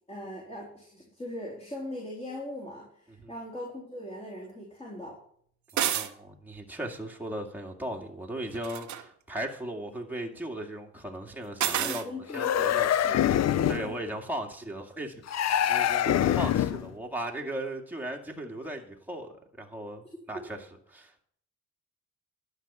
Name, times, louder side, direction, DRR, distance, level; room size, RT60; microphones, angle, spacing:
voice 1, 0.1-5.2 11.7-13.3 13.8-14.0 16.1-16.2, left 1 dB, 20° left, -2 dB, 3.6 m, -40 dB
voice 2, 5.7-12.1 12.3-12.9 13.7-21.2, right 1 dB, 5° right, 0 dB, 2.1 m, -37 dB
sound 1, 5.7-6.1 8.5-9.0 11.6-12.1, right 11 dB, 70° right, 1.2 m, -29 dB
sound 2, 12.3-13.9 15.3-16.9, left 10 dB, 60° left, 0.7 m, -25 dB
11.5 x 5.7 x 8.3 m, 0.63 s
cardioid pair, 90°, 30 cm